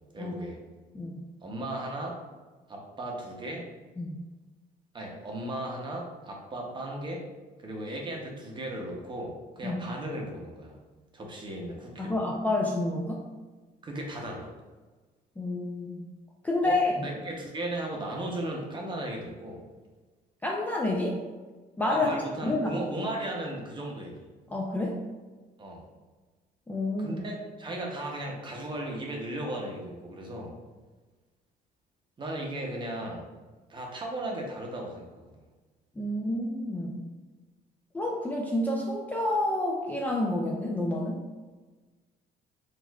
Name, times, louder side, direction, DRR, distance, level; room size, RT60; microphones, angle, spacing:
voice 1, 0.1-0.6 1.4-2.2 2.7-3.7 4.9-7.3 7.6-10.8 11.1-12.2 13.8-14.5 16.6-19.6 21.9-24.3 25.6-25.8 27.0-30.6 32.2-33.3 33.7-35.4, right 1 dB, 30° right, 0 dB, 0.7 m, -36 dB
voice 2, 12.0-13.2 15.4-16.1 16.4-16.9 20.4-21.2 21.8-22.1 22.4-22.7 24.5-25.0 26.7-27.2 36.0-37.0 37.9-41.2, left 2 dB, 10° left, -2 dB, 0.3 m, -29 dB
4.3 x 2.4 x 2.3 m, 1.3 s
cardioid pair, 110°, 17 cm